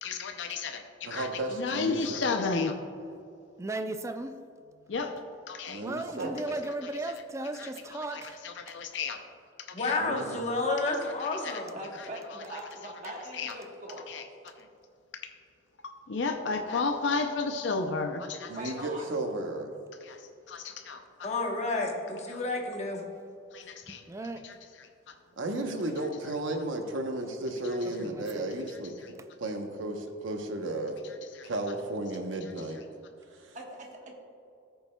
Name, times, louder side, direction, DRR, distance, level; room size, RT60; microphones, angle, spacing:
voice 1, 0.0-2.8 4.9-5.2 5.5-5.8 6.8-6.9 7.5-9.2 9.6-10.0 11.0-11.6 11.9-12.9 13.3-13.6 14.1-14.3 14.6-14.7 15.1-15.3 16.1-18.9 20.0-21.3 22.3-22.4 23.5-24.1 24.4-25.2 29.0-29.1 31.3-31.5, left 4 dB, 70° left, 5 dB, 0.5 m, -34 dB
voice 2, 1.0-2.2 5.7-6.4 10.0-10.4 18.5-19.7 25.4-28.9 29.4-31.0 31.4-32.8 33.3-33.6, right 1 dB, 90° right, 4 dB, 0.9 m, -34 dB
voice 3, 3.6-4.3 5.8-8.4 23.9-24.5 28.0-28.4, right 2 dB, 15° right, 8 dB, 0.4 m, -36 dB
voice 4, 9.7-11.7 21.2-23.0, left 2 dB, 35° left, 1 dB, 1.0 m, -30 dB
voice 5, 11.7-14.1 18.4-19.1 33.5-34.1, right 1 dB, 40° right, 0 dB, 1.2 m, -42 dB
14.0 x 6.9 x 2.2 m, 2.6 s
head